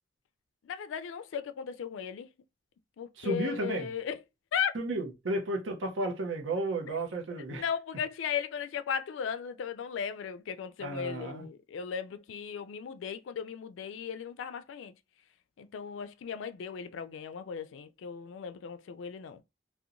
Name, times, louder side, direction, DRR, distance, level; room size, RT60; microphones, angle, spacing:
voice 1, 0.6-2.3 3.0-4.2 4.5-4.7 7.5-14.9 15.6-19.4, left 7 dB, 85° left, 0.3 m, -36 dB
voice 2, 3.2-3.9 4.7-7.6 10.8-11.5, right 2 dB, 85° right, 0.6 m, -33 dB
2.8 x 2.1 x 2.5 m
head